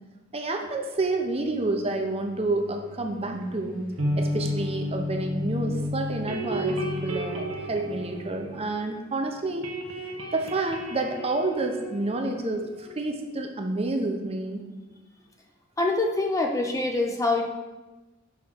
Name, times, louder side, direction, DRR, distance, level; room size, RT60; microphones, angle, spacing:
voice 1, 0.3-3.8 4.2-9.8 10.3-14.7, right 2 dB, 30° right, 3 dB, 0.7 m, -29 dB
sound 1, 0.7-8.4, left 1 dB, 50° left, 2.3 m, -48 dB
sound 2, 3.3-9.2 9.4-12.9, equal, 85° right, 1.0 m, -32 dB
voice 2, 15.8-17.4, left 2 dB, 15° left, 3 dB, 0.5 m, -25 dB
5.7 x 3.7 x 5.9 m, 1.1 s
head